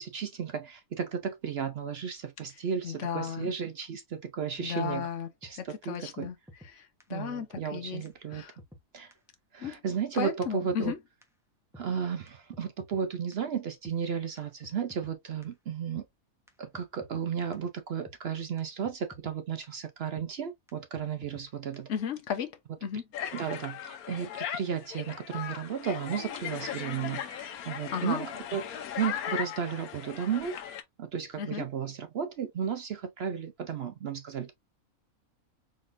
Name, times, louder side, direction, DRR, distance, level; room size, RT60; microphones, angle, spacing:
voice 1, 0.0-5.1 5.4-6.3 7.1-8.4 8.9-9.1 9.5-10.9 11.8-16.0 16.6-21.9 23.3-30.5 31.0-34.5, right 7 dB, 65° right, 0.6 m, -34 dB
voice 2, 2.8-3.5 4.6-5.3 5.6-6.4 6.6-8.0 8.3-8.5 9.6-9.8 10.1-11.0 21.9-23.0 27.9-28.3 31.4-31.6, left 7 dB, 60° left, 1.1 m, -34 dB
sound 1, 5.4-5.5 5.9-6.0 6.2-6.7 7.0-7.1 7.5-7.6 8.1-8.2 8.3-8.8 9.1-9.2 9.6-9.8 10.2-10.3 10.4-10.9 11.2-11.3 11.7-11.9 12.3-13.0 13.3-13.4 13.8-14.0 14.4-14.5 14.6-15.1 15.4-15.5 16.0-16.1 16.5-16.6 16.7-17.3 17.5-17.6 18.1-18.2 18.6-18.7 18.8-19.4 19.6-19.7 20.2-20.3 20.7-20.8 21.0-21.5 21.7-21.8, left 1 dB, ahead, 0.8 m, -51 dB
sound 2, 23.1-30.8, left 9 dB, 80° left, 1.2 m, -38 dB
4.3 x 3.5 x 2.5 m
omnidirectional pair, 1.5 m